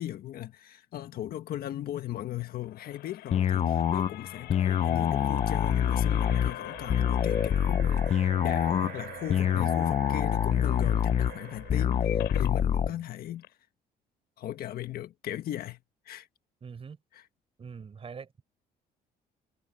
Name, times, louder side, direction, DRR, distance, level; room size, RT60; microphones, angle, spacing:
voice 1, 0.0-13.4 14.4-15.8 16.0-16.3 17.1-17.2, left 13 dB, 65° left, 1.6 m, -38 dB
sound 1, 2.4-12.5 13.0-13.1 13.4-13.5, left 15 dB, 80° left, 6.5 m, -45 dB
sound 2, 3.3-12.9, left 8 dB, 40° left, 0.8 m, -26 dB
sound 3, 5.6-12.1, right 13 dB, 70° right, 4.0 m, -46 dB
voice 2, 12.7-13.0 16.6-17.0 17.6-18.4, right 6 dB, 35° right, 5.7 m, -44 dB
cardioid pair, 110°, 17 cm